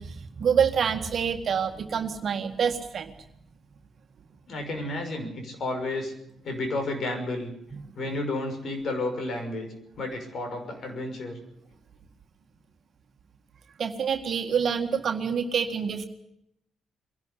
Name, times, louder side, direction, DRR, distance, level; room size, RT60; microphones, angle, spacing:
voice 1, 0.0-3.1 7.7-7.8 13.8-16.1, right 7 dB, 55° right, 4 dB, 1.9 m, -27 dB
voice 2, 4.5-6.1 6.4-7.5 8.0-11.4, left 2 dB, 55° left, 6 dB, 5.9 m, -31 dB
22.5 x 12.0 x 9.8 m, 0.78 s
cardioid pair, 90°, 0 cm